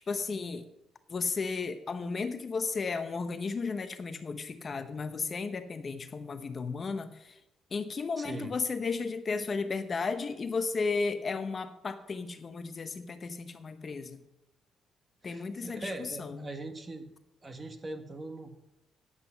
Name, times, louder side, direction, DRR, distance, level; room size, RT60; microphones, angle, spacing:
voice 1, 0.1-0.6 1.1-7.4 7.7-14.2 15.2-16.5, left 4 dB, 40° left, 10 dB, 0.8 m, -34 dB
voice 2, 8.2-8.5 15.2-17.1 17.4-18.6, right 2 dB, 30° right, 7 dB, 1.5 m, -41 dB
9.9 x 8.0 x 5.7 m, 0.87 s
cardioid pair, 90°, 0 cm